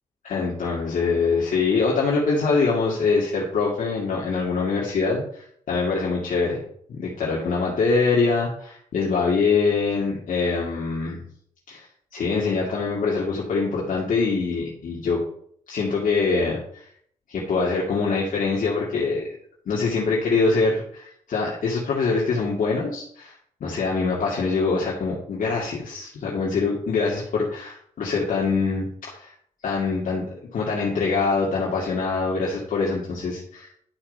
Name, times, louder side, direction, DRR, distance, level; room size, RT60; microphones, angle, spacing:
voice 1, 0.2-6.6 6.9-11.3 11.7-11.8 12.1-15.2 15.7-16.9 17.3-19.3 19.7-23.3 23.6-29.3 29.6-30.2 30.5-33.7, left 4 dB, 70° left, -4 dB, 2.0 m, -24 dB
11.0 x 4.5 x 5.4 m, 0.65 s
cardioid pair, 95°, 14 cm